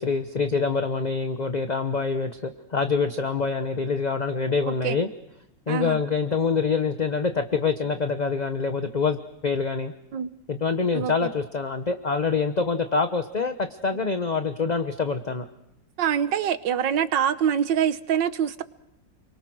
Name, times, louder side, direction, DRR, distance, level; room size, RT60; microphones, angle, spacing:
voice 1, 0.0-5.1 5.7-9.9 10.5-15.5, left 4 dB, 30° left, 8 dB, 0.9 m, -25 dB
voice 2, 5.7-6.0 10.1-10.3 10.9-11.3 16.0-18.6, right 8 dB, 75° right, 13 dB, 1.7 m, -25 dB
30.0 x 23.5 x 6.3 m, 0.85 s
omnidirectional pair, 2.0 m